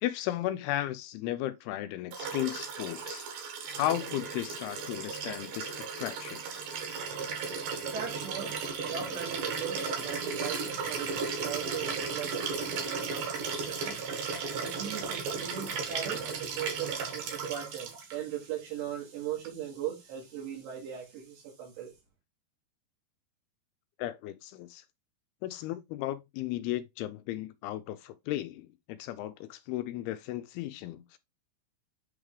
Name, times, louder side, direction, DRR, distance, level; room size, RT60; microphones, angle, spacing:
voice 1, 0.0-3.3 3.8-6.4 24.0-24.8 25.4-31.2, left 14 dB, 85° left, 2.3 m, -35 dB
Liquid, 2.1-18.2 19.4-19.5, right 5 dB, 60° right, 3.0 m, -35 dB
voice 2, 7.9-14.0 14.6-22.0, right 10 dB, 75° right, 4.2 m, -39 dB
8.7 x 3.6 x 3.3 m
omnidirectional pair, 4.9 m